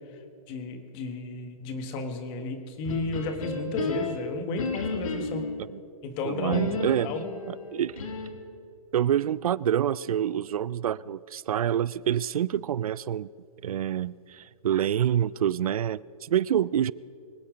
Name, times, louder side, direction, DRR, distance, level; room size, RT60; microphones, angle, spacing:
voice 1, 0.5-5.5 6.0-6.6 7.0-7.4, left 3 dB, 25° left, 1.5 m, -33 dB
sound 1, 2.8-5.6 6.5-8.5, left 3 dB, 65° left, 2.0 m, -32 dB
voice 2, 6.2-7.1 7.5-8.0 8.9-13.3 13.6-16.9, right 10 dB, 70° right, 0.4 m, -27 dB
24.0 x 8.4 x 5.1 m
hypercardioid pair, 150°, 19 cm